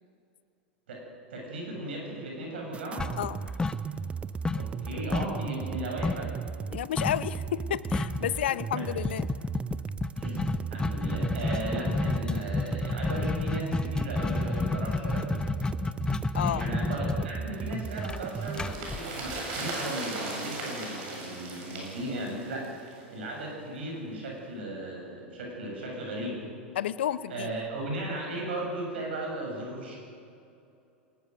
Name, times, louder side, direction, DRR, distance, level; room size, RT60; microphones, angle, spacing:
voice 1, 1.3-3.1 4.5-6.3 8.2-8.8 10.2-15.3 16.3-26.5 27.3-30.0, right 1 dB, 70° right, 0 dB, 7.4 m, -36 dB
sound 1, 2.7-18.7, right 6 dB, 20° right, 0.6 m, -36 dB
sound 2, 3.0-4.2 4.4-6.3 7.0-7.3 7.6-7.7 7.9-8.3 9.0-19.8, left 3 dB, 10° left, 0.8 m, -30 dB
voice 2, 6.7-9.3 16.3-16.7 26.7-27.5, left 11 dB, 65° left, 17 dB, 0.7 m, -31 dB
sound 3, 17.7-23.1 23.4-23.5, right 2 dB, 50° right, 7.6 m, -38 dB
22.5 x 19.5 x 6.8 m, 2.6 s
figure-of-eight pair, 90°, 6 cm